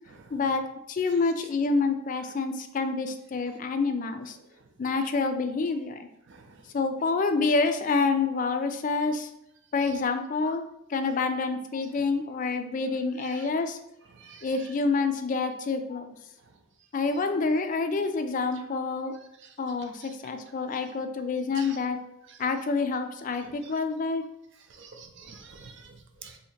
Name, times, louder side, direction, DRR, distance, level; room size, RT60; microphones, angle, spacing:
voice 1, 0.3-0.6 0.9-4.4 4.8-6.1 6.7-9.3 9.7-10.6 10.9-13.8 14.4-16.2 16.9-19.1 19.6-22.0 22.4-24.2, left 4 dB, 40° left, 7 dB, 0.3 m, -27 dB
voice 2, 6.3-6.6 13.2-13.4 14.1-14.5 21.5-21.8 22.3-22.4 23.4-23.5 24.7-26.4, right 5 dB, 60° right, 5 dB, 0.5 m, -48 dB
2.8 x 2.7 x 4.2 m, 0.82 s
head